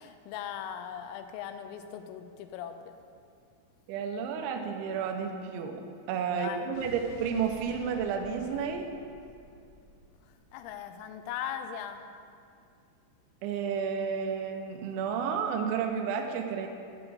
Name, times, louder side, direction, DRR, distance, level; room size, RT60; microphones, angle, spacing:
voice 1, 0.0-2.9 6.3-6.6 10.5-12.0, left 9 dB, 90° left, 8 dB, 3.2 m, -39 dB
voice 2, 3.9-5.8 6.1-8.9 13.4-16.7, right 6 dB, 80° right, 4 dB, 2.7 m, -31 dB
Explosion, 6.7-11.1, left 2 dB, 70° left, 2.8 m, -51 dB
8.5 x 4.1 x 6.9 m, 2.3 s
omnidirectional pair, 5.9 m